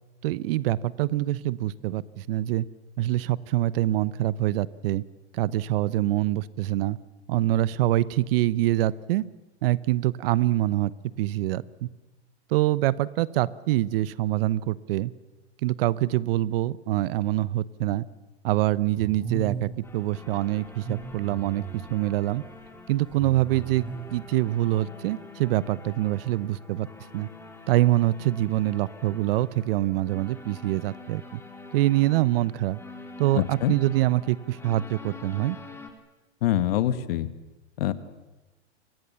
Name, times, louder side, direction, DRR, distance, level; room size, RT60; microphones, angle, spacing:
voice 1, 0.2-2.6 3.0-5.0 5.3-7.0 7.3-9.2 9.6-10.9 11.2-11.9 12.5-15.1 15.6-18.1 18.4-22.4 22.9-23.8 24.1-26.9 27.1-27.3 27.7-31.4 31.7-32.8 33.2-35.6, right 15 dB, 55° right, 19 dB, 1.0 m, -25 dB
sound 1, 19.0-19.9 20.7-22.0 22.9-24.3, right 6 dB, 15° right, 4.5 m, -37 dB
sound 2, 19.8-35.9, left 3 dB, 5° left, 3.8 m, -46 dB
voice 2, 33.4-33.7 36.4-37.3 37.8-37.9, left 13 dB, 60° left, 12 dB, 1.9 m, -24 dB
28.5 x 25.0 x 7.1 m, 1.1 s
hypercardioid pair, 115°, 34 cm